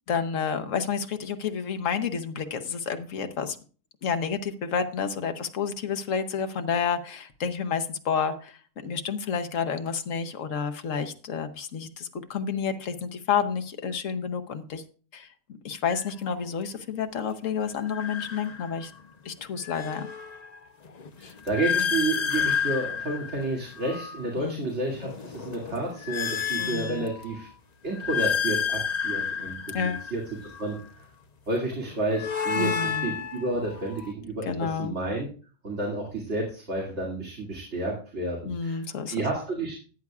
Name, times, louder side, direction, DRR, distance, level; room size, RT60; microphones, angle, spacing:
voice 1, 0.1-3.6 4.0-14.8 15.1-15.3 15.6-18.9 19.2-20.1 21.2-21.3 24.4-24.7 26.6-27.1 29.7-30.1 32.6-33.1 34.4-34.9 38.4-39.2, left 6 dB, 80° left, 8 dB, 1.3 m, -30 dB
sound 1, 15.9-16.1 17.8-19.0 19.4-24.2 24.8-27.4 27.9-30.8 31.8-34.1, left 7 dB, 40° left, 0.8 m, -31 dB
voice 2, 21.2-27.5 27.8-31.1 31.5-35.3 35.6-39.8, right 2 dB, 60° right, -2 dB, 2.7 m, -31 dB
14.0 x 9.5 x 2.4 m, 0.39 s
omnidirectional pair, 1.3 m